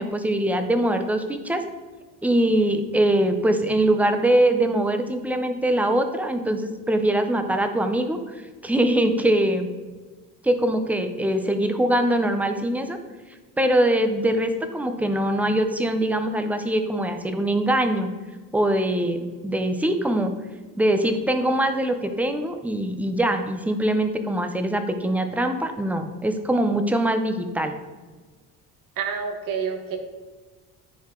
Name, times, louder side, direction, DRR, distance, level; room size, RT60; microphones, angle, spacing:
voice 1, 0.0-1.6 2.2-8.2 8.6-9.7 10.4-13.0 13.6-18.1 18.5-20.3 20.8-27.7, right 1 dB, 5° right, 7 dB, 0.5 m, -22 dB
voice 2, 29.0-30.0, right 6 dB, 70° right, 5 dB, 1.3 m, -28 dB
10.5 x 4.7 x 3.7 m, 1.4 s
cardioid pair, 155°, 34 cm